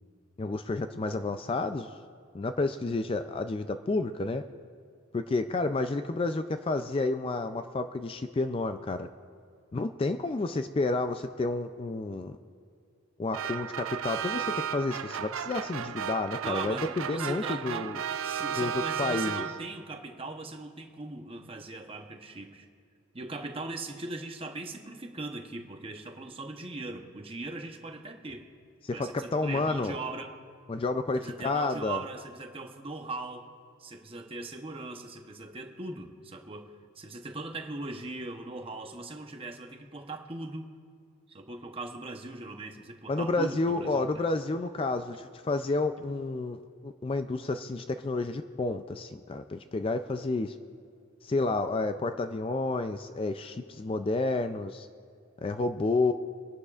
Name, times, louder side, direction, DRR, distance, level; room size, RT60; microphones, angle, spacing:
voice 1, 0.4-1.9 2.3-4.5 5.1-9.1 9.7-12.4 13.2-18.0 18.6-19.5 28.8-30.0 30.7-32.0 43.1-50.5 51.2-54.9 55.4-56.1, left 3 dB, 25° left, 9 dB, 0.3 m, -30 dB
sound 1, 13.3-19.9, right 8 dB, 80° right, 0.4 m, -34 dB
voice 2, 16.4-17.9 18.2-22.7 23.1-28.5 28.9-30.4 31.1-33.5 33.8-40.7 41.3-44.3 46.0-46.3, right 2 dB, 25° right, 4 dB, 0.9 m, -40 dB
24.0 x 11.5 x 2.4 m, 2.3 s
head